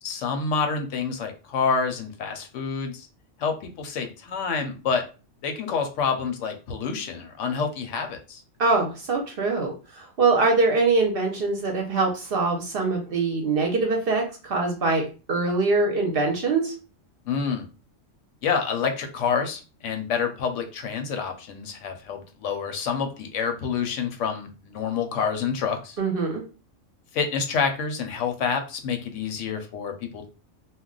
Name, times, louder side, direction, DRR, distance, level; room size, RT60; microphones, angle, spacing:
voice 1, 0.0-3.1 3.4-5.0 5.4-8.4 17.3-17.6 18.4-26.0 27.1-30.3, left 6 dB, 75° left, 5 dB, 0.9 m, -28 dB
voice 2, 8.6-16.7 26.0-26.4, right 3 dB, 60° right, 2 dB, 0.7 m, -23 dB
2.3 x 2.1 x 3.7 m, 0.34 s
omnidirectional pair, 1.3 m